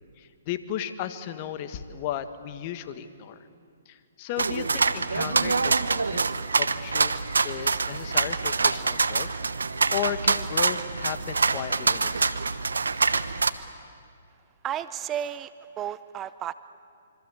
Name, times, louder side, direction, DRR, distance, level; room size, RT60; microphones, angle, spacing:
voice 1, 0.2-3.5 3.9-7.1 7.4-9.3 9.9-12.4 12.9-13.2, left 10 dB, 40° left, 11 dB, 1.6 m, -35 dB
sound 1, 4.4-13.5, right 4 dB, 85° right, 1.1 m, -25 dB
voice 2, 14.6-15.5 15.8-16.5, right 10 dB, 20° right, 15 dB, 0.6 m, -32 dB
26.0 x 25.0 x 8.4 m, 2.3 s
hypercardioid pair, 135°, 0 cm